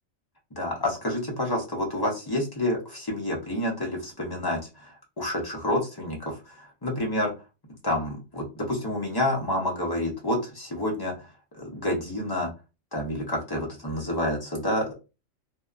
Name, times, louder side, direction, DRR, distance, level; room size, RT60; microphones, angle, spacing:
voice 1, 0.6-7.3 7.8-11.3 11.6-12.5 12.9-14.9, left 1 dB, 35° left, -1 dB, 0.4 m, -29 dB
2.7 x 2.2 x 2.4 m, 0.29 s
omnidirectional pair, 1.4 m